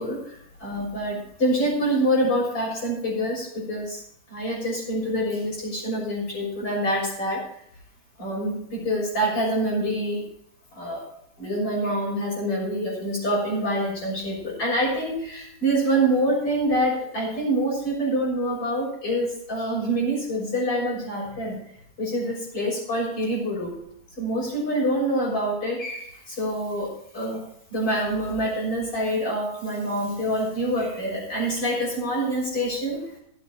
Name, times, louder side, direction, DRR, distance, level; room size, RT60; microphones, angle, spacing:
voice 1, 0.0-4.0 4.3-7.4 8.2-10.2 10.7-11.0 11.4-21.6 22.0-23.7 24.2-27.4 27.7-33.1, right 1 dB, 40° left, -5 dB, 7.5 m, -26 dB
18.0 x 8.5 x 4.3 m, 0.70 s
omnidirectional pair, 4.0 m